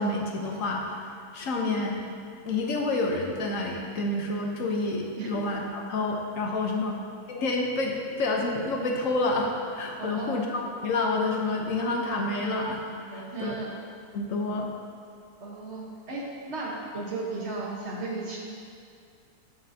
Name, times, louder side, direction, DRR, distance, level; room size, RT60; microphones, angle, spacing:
voice 1, 0.0-2.0 2.4-7.0 7.3-12.8 13.1-13.5 14.1-14.7, left 2 dB, 60° left, 0 dB, 1.1 m, -28 dB
voice 2, 10.0-10.3 13.1-13.7 15.4-18.4, right 3 dB, 45° right, -3 dB, 1.3 m, -35 dB
12.5 x 5.0 x 2.7 m, 2.3 s
omnidirectional pair, 1.7 m